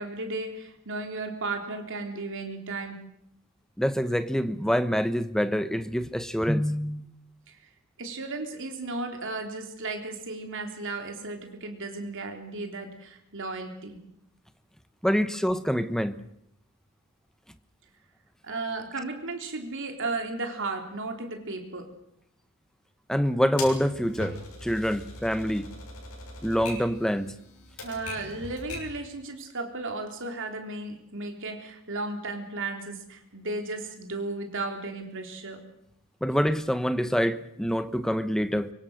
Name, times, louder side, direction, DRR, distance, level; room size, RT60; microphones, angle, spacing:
voice 1, 0.0-3.0 7.5-7.6 8.0-14.0 18.4-21.9 27.8-35.6, right 3 dB, 60° right, 3.7 m, -35 dB
voice 2, 3.8-7.1 15.0-16.2 23.1-25.7 26.4-27.3 36.2-38.7, equal, ahead, 1.0 m, -26 dB
Typewriter, 23.6-29.0, left 2 dB, 85° left, 6.9 m, -40 dB
24.5 x 24.0 x 6.6 m
head